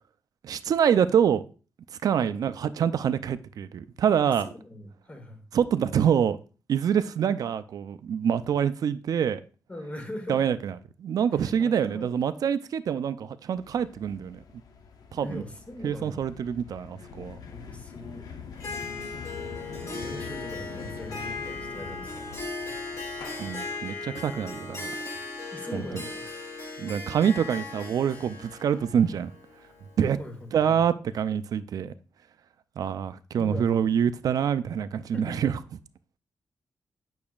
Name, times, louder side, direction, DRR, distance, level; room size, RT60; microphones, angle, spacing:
voice 1, 0.4-1.4 2.0-4.5 5.5-6.4 6.7-9.4 10.3-14.4 15.1-15.4 15.8-17.4 23.4-24.9 25.7-26.0 26.8-29.3 30.0-30.2 30.5-31.9 32.8-35.6, right 8 dB, 65° right, 0.4 m, -26 dB
voice 2, 4.3-5.4 9.7-10.4 11.3-12.2 15.2-16.3 17.5-18.3 19.7-22.3 25.5-26.3 30.2-30.3 30.6-30.8 33.3-33.6 35.1-35.4, left 1 dB, 20° left, 1.2 m, -41 dB
sound 1, 13.5-23.8, left 6 dB, 70° left, 0.8 m, -44 dB
Harp, 18.6-30.4, left 3 dB, 55° left, 2.0 m, -38 dB
8.6 x 6.1 x 2.4 m
wide cardioid pair, 160°, 7 cm